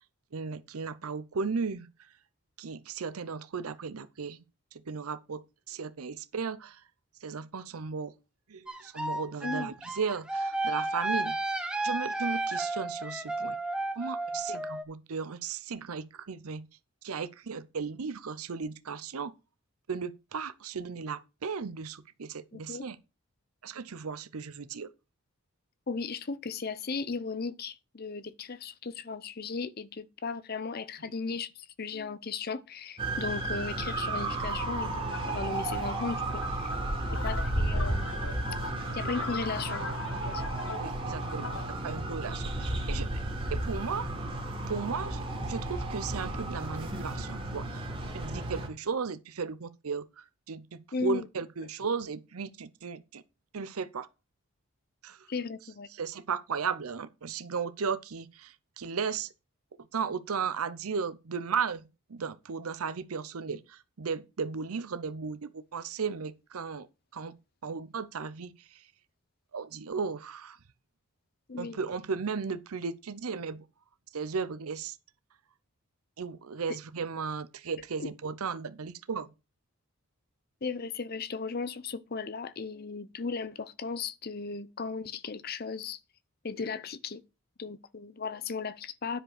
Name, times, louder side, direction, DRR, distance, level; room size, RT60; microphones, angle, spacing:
voice 1, 0.3-1.9 2.6-4.4 4.7-5.4 5.7-6.8 7.2-8.1 8.5-11.4 11.8-13.6 14.0-16.7 17.0-19.3 19.9-23.0 23.6-24.9 40.8-43.2 43.5-44.1 44.7-47.9 48.1-53.2 53.5-54.1 55.0-55.3 55.9-59.3 59.9-66.9 67.1-67.4 67.6-68.9 69.5-70.6 71.6-73.6 74.1-75.0 76.2-79.3, right 5 dB, 85° right, 0.7 m, -35 dB
sound 1, 8.7-14.8, right 2 dB, 5° right, 1.0 m, -32 dB
voice 2, 22.5-22.8 25.9-36.7 37.2-38.1 38.9-39.8 40.2-40.4 50.9-51.3 55.3-55.9 71.5-71.8 78.0-78.1 80.6-86.0 86.4-87.2 87.6-89.2, left 4 dB, 45° left, 0.6 m, -36 dB
sound 2, 33.0-48.7, right 1 dB, 25° right, 2.4 m, -33 dB
sound 3, 35.1-41.7, left 4 dB, 60° left, 0.9 m, -42 dB
10.0 x 5.1 x 6.5 m
head